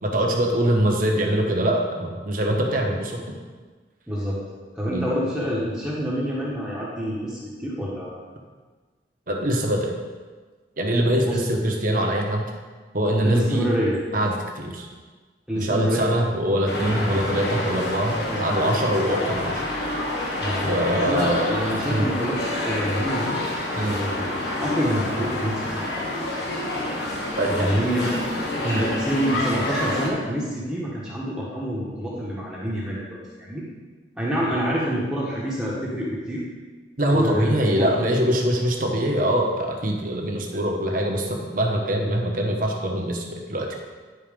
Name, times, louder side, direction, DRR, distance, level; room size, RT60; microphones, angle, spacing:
voice 1, 0.0-3.2 4.9-5.1 9.3-9.9 10.8-12.5 12.9-13.6 14.1-14.9 15.6-19.6 20.6-21.6 21.9-22.1 23.7-24.0 27.4-27.8 28.6-28.8 37.0-43.7, right 1 dB, 50° right, 1 dB, 1.2 m, -23 dB
voice 2, 4.1-4.4 4.7-8.2 11.2-11.4 13.2-14.0 15.5-16.2 18.3-18.6 20.4-23.4 23.8-25.9 27.5-28.2 28.5-33.6 34.2-36.4 37.1-37.9, equal, 5° right, -7 dB, 1.3 m, -27 dB
sound 1, 16.7-30.1, left 1 dB, 65° left, 1.5 m, -28 dB
10.5 x 4.1 x 5.2 m, 1.4 s
head